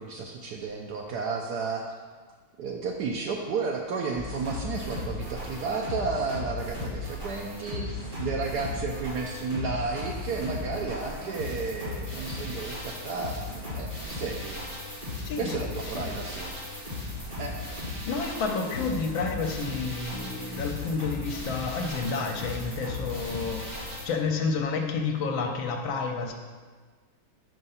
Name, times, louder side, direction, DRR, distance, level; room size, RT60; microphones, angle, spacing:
voice 1, 0.0-1.9 2.6-14.6 15.4-16.5 17.4-17.5 17.9-18.1, right 4 dB, 75° right, 1 dB, 1.0 m, -32 dB
sound 1, 4.2-24.1, left 2 dB, 25° right, 2.5 m, -36 dB
voice 2, 15.2-15.6 15.9-16.1 18.0-26.3, left 4 dB, 80° left, 3 dB, 1.5 m, -30 dB
5.6 x 5.3 x 5.5 m, 1.5 s
omnidirectional pair, 2.2 m